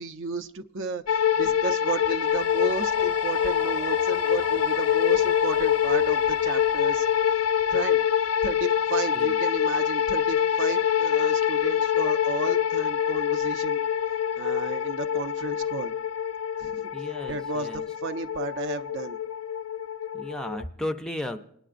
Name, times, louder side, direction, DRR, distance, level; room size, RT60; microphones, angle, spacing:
voice 1, 0.0-7.1 7.7-8.0 8.4-13.8 14.3-15.9 16.6-16.9 17.3-19.2, right 4 dB, 60° right, 9 dB, 0.6 m, -33 dB
sound 1, 1.1-20.6, left 9 dB, 75° left, 0.4 m, -25 dB
sound 2, 2.1-8.0, right 6 dB, 20° right, 0.8 m, -43 dB
voice 2, 16.9-17.8 20.1-21.4, left 1 dB, 5° left, 8 dB, 0.4 m, -34 dB
29.0 x 9.9 x 2.5 m, 0.78 s
head